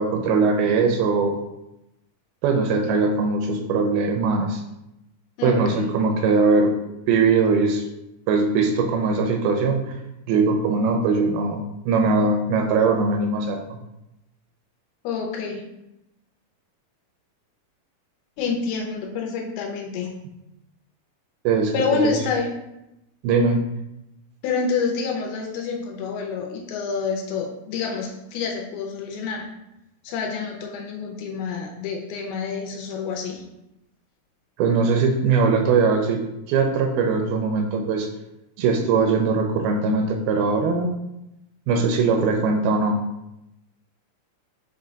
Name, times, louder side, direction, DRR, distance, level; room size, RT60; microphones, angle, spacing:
voice 1, 0.0-1.4 2.4-4.6 5.4-6.7 7.1-7.8 8.3-10.0 10.3-13.6 21.5-22.1 23.2-23.6 34.6-36.2 36.5-38.1 38.6-40.9 41.7-43.0, right 4 dB, 80° right, 3 dB, 2.3 m, -21 dB
voice 2, 5.4-5.9 15.0-15.8 18.4-20.1 21.7-22.5 24.4-29.5 30.0-33.4, left 5 dB, 80° left, 1 dB, 2.4 m, -27 dB
6.1 x 2.2 x 3.9 m, 0.89 s
omnidirectional pair, 4.5 m